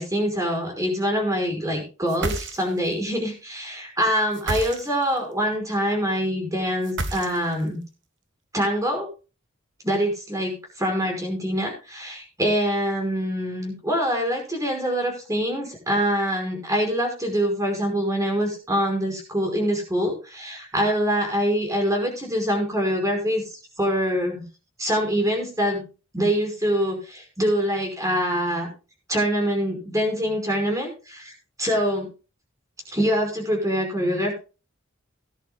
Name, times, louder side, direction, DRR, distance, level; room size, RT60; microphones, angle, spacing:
voice 1, 0.0-7.8 8.5-9.1 9.8-23.4 23.8-24.4 24.8-25.8 26.1-28.7 29.1-31.3 31.6-32.1 32.9-34.3, equal, 15° right, 3 dB, 5.1 m, -24 dB
sound 1, 2.1-2.9 4.3-5.2 6.8-7.7, right 2 dB, 60° right, 1.5 m, -30 dB
18.5 x 11.0 x 2.4 m, 0.32 s
head